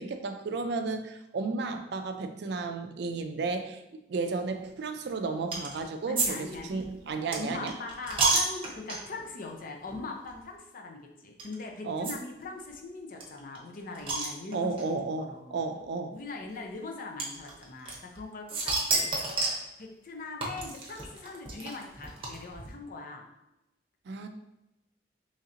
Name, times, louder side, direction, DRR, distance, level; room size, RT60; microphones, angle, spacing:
voice 1, 0.0-3.8 4.1-7.7 11.8-12.2 14.5-16.2 24.1-24.3, right 4 dB, 65° right, 7 dB, 0.4 m, -33 dB
sound 1, 5.5-5.8 6.2-9.2 9.9-10.0 10.3-10.4 11.4-11.5 12.0-12.1 12.4-12.5 12.7-12.8 13.2-14.8 15.7-15.8 17.2-18.2 18.5-19.7 20.4-22.7, right 3 dB, 30° right, 0.8 m, -30 dB
voice 2, 6.1-6.9 7.4-15.6 16.1-19.2 19.8-23.3, left 3 dB, 50° left, 2 dB, 0.6 m, -41 dB
3.1 x 2.8 x 3.7 m, 0.92 s
head